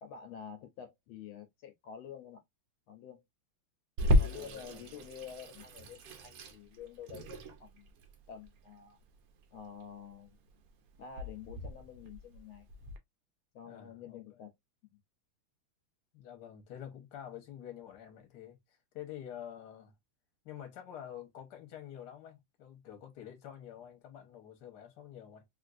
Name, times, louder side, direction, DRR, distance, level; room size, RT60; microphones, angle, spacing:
voice 1, 0.0-2.4 2.9-3.2 4.2-7.9 8.3-9.0 9.5-10.4 11.0-12.7 13.5-14.5, left 8 dB, 80° left, 1.5 m, -48 dB
Water tap faucet / Sink (filling or washing), 4.0-13.0, left 1 dB, 80° right, 0.8 m, -34 dB
voice 2, 4.3-4.9 13.6-14.4 16.1-19.9 20.4-25.4, left 10 dB, 60° left, 1.4 m, -48 dB
3.5 x 2.5 x 2.5 m
omnidirectional pair, 2.3 m